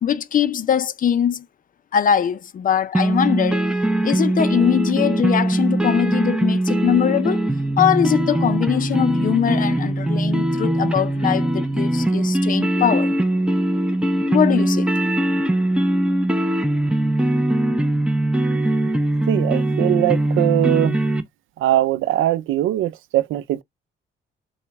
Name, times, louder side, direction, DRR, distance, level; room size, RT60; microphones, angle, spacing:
voice 1, 0.0-1.5 1.9-3.7 4.0-7.4 7.8-13.1 14.3-14.9, left 9 dB, 45° left, 0.5 m, -21 dB
sound 1, 2.9-21.2, right 1 dB, 5° right, 0.6 m, -21 dB
voice 2, 19.3-21.0 21.6-23.6, right 14 dB, 80° right, 0.5 m, -21 dB
3.8 x 2.2 x 3.4 m
cardioid pair, 90°, 20 cm